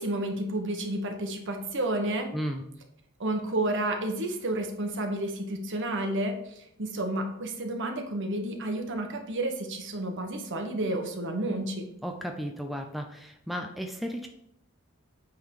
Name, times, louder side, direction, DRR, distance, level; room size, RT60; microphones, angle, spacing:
voice 1, 0.0-2.3 3.2-11.8, right 1 dB, 60° right, 4 dB, 1.3 m, -31 dB
voice 2, 2.3-2.6 12.0-14.3, equal, ahead, 3 dB, 0.5 m, -34 dB
8.8 x 3.9 x 4.8 m, 0.76 s
head